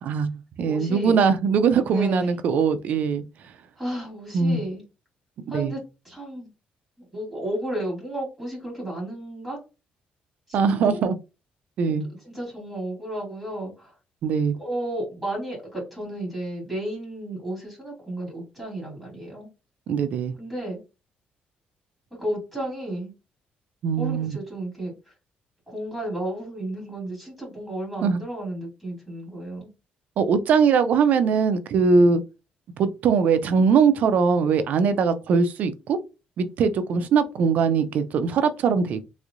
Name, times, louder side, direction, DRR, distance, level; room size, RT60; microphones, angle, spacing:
voice 1, 0.0-3.2 4.3-4.6 5.5-5.7 10.5-11.2 11.8-12.1 14.2-14.5 19.9-20.3 23.8-24.4 28.0-28.2 30.2-32.2 32.8-36.0 36.4-39.0, right 5 dB, 55° right, 0.5 m, -21 dB
voice 2, 0.7-1.2 1.9-2.3 3.8-4.8 5.5-6.5 7.1-9.6 10.5-11.0 12.2-13.9 14.6-19.5 20.4-20.8 22.2-23.1 24.0-25.1 25.7-29.7, right 1 dB, 5° left, 2.2 m, -33 dB
3.6 x 3.1 x 2.5 m
cardioid pair, 175°, 3 cm